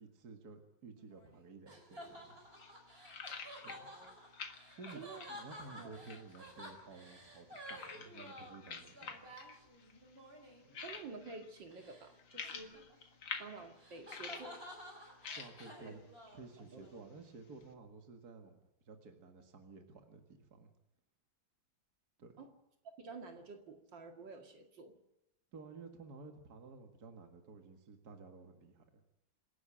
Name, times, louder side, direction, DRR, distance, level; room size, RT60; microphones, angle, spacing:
voice 1, 0.0-2.4 3.6-3.9 4.8-5.0 5.3-9.3 15.3-16.0 16.3-18.6 18.9-20.7 22.2-22.3 25.5-29.0, right 4 dB, 55° right, 5 dB, 2.3 m, -53 dB
sound 1, 1.0-10.8 11.7-12.1 12.4-17.0, equal, 30° right, 4.7 m, -53 dB
sound 2, 2.0-17.7, left 5 dB, 75° left, 2.5 m, -51 dB
voice 2, 3.6-4.1 4.9-5.2 5.8-6.0 10.8-13.1 13.4-14.6 15.8-15.9 16.6-16.9 22.4-22.5 23.0-25.0, right 4 dB, 70° right, 4 dB, 2.9 m, -50 dB
26.5 x 11.5 x 9.9 m, 0.91 s
omnidirectional pair, 2.1 m